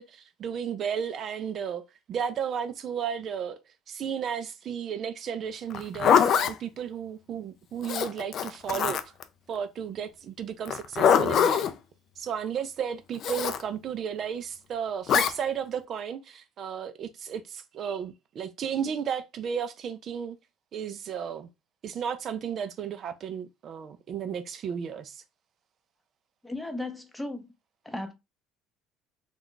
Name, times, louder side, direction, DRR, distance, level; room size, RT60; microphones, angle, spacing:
voice 1, 0.0-1.8 2.1-3.6 3.9-9.1 9.5-11.7 12.2-20.4 20.7-21.5 21.8-25.2, right 8 dB, 50° right, 0.3 m, -34 dB
Zipper (clothing), 5.7-6.5 7.8-9.2 10.7-11.7 13.2-13.6 15.1-15.3, left 8 dB, 55° left, 0.3 m, -23 dB
voice 2, 26.4-27.5 27.8-28.1, left 2 dB, 5° left, 0.6 m, -35 dB
2.3 x 2.2 x 3.7 m
supercardioid pair, 95°, 0 cm